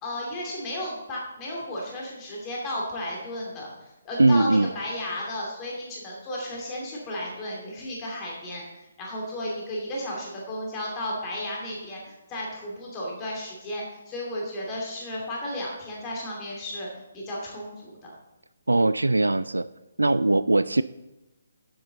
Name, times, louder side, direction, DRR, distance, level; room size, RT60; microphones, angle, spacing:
voice 1, 0.0-16.9 17.1-18.1, left 1 dB, 20° left, -3 dB, 2.6 m, -34 dB
voice 2, 4.2-4.7 18.7-19.7 20.0-20.8, right 2 dB, 75° right, 15 dB, 0.3 m, -20 dB
11.5 x 7.9 x 3.9 m, 0.99 s
figure-of-eight pair, 140°, 0 cm